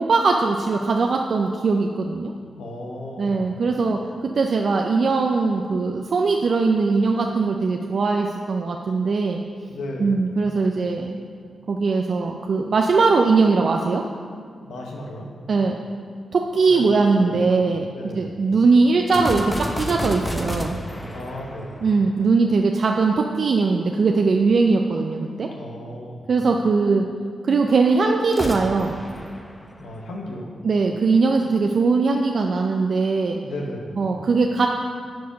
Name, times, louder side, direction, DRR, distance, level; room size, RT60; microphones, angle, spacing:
voice 1, 0.0-2.3 3.2-4.0 4.4-9.4 10.0-11.2 11.7-14.0 15.5-15.8 16.3-17.8 18.2-20.8 21.8-25.5 26.3-27.0 27.4-29.0 30.6-33.4 34.0-34.7, right 4 dB, 65° right, 2 dB, 0.5 m, -20 dB
voice 2, 2.6-3.6 9.7-10.2 14.6-15.3 16.7-16.9 17.2-17.4 17.9-18.4 21.1-21.9 25.5-26.3 29.8-30.5 33.4-34.0, left 1 dB, 85° left, 0 dB, 1.1 m, -35 dB
sound 1, 19.1-22.6 28.2-30.3, equal, 20° left, 1.0 m, -31 dB
9.4 x 4.7 x 5.2 m, 2.1 s
supercardioid pair, 45°, 0 cm